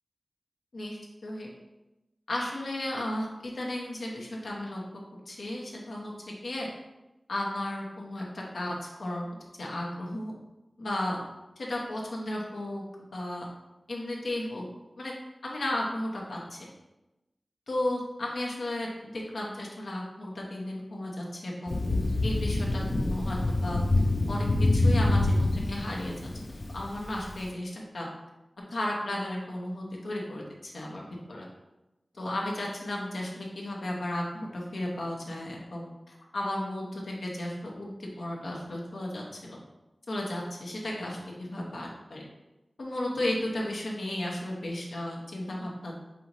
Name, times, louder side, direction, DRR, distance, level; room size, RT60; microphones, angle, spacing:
voice 1, 0.7-1.5 2.3-4.8 5.3-6.7 7.3-9.2 9.6-10.4 10.8-11.2 11.6-13.4 13.9-14.6 15.0-15.1 15.4-16.6 17.7-18.9 19.1-21.8 22.2-23.4 23.6-23.8 24.3-24.5 24.7-26.1 26.7-28.1 28.7-31.5 32.1-39.6 40.1-42.2 42.8-46.0, left 1 dB, 90° left, -2 dB, 0.9 m, -34 dB
Thunder, 21.7-27.4, left 2 dB, 60° left, 0.5 m, -26 dB
5.6 x 2.7 x 3.0 m, 1.0 s
wide cardioid pair, 75°, 0 cm